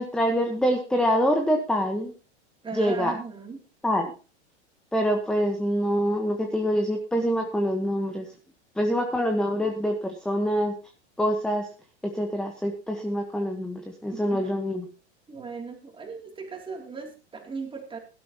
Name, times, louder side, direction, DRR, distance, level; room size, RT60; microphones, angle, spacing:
voice 1, 0.0-2.1 2.7-3.1 3.8-4.1 4.9-8.3 8.8-10.7 11.2-11.7 12.1-14.8, equal, ahead, 4 dB, 1.3 m, -25 dB
voice 2, 2.6-3.6 14.1-14.5 15.3-18.0, right 4 dB, 15° right, 3 dB, 3.0 m, -37 dB
17.5 x 12.0 x 3.0 m, 0.34 s
supercardioid pair, 130°, 35 cm